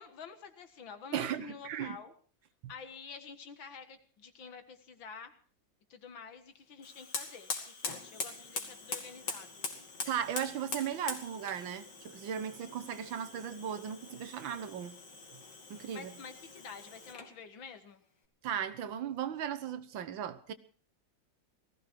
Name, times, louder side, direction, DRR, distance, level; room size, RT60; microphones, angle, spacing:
voice 1, 0.0-2.1 2.7-5.3 5.9-9.6 15.9-18.0, left 6 dB, 80° left, 2.4 m, -49 dB
voice 2, 1.1-2.0 10.1-15.0 15.3-15.4 15.7-16.1 18.4-20.5, right 9 dB, 80° right, 1.8 m, -37 dB
Fire, 6.8-17.4, left 4 dB, 65° left, 3.0 m, -43 dB
18.5 x 15.5 x 4.6 m
omnidirectional pair, 2.1 m